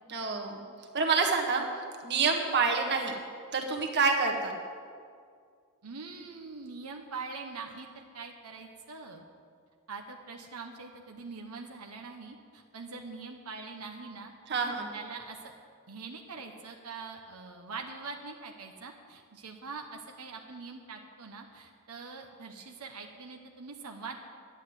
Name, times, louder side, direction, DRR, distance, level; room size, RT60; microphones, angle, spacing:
voice 1, 0.1-0.6 0.9-1.6 2.0-3.1 3.5-4.5 14.5-14.9, right 4 dB, 50° right, 1 dB, 1.6 m, -27 dB
voice 2, 5.8-9.2 9.9-14.3 14.7-15.5 15.9-24.1, right 4 dB, 90° right, 3 dB, 1.1 m, -43 dB
11.0 x 9.6 x 8.1 m, 2.1 s
head